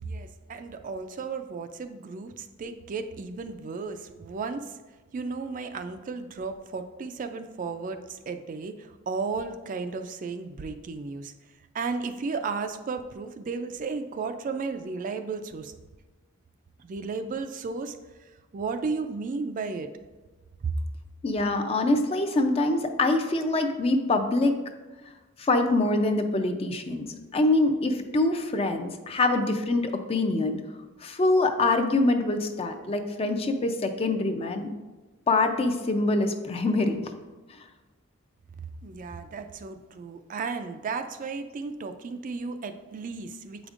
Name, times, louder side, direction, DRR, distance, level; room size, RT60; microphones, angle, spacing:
voice 1, 0.0-4.6 5.1-11.3 11.7-15.7 16.9-18.0 18.5-19.9 20.6-20.7 38.8-43.7, right 4 dB, 40° right, 8 dB, 0.3 m, -34 dB
voice 2, 21.2-24.5 25.4-27.1 27.3-30.6 31.0-34.7 35.3-37.0, left 2 dB, 30° left, 6 dB, 0.4 m, -24 dB
7.8 x 5.0 x 2.4 m, 1.2 s
head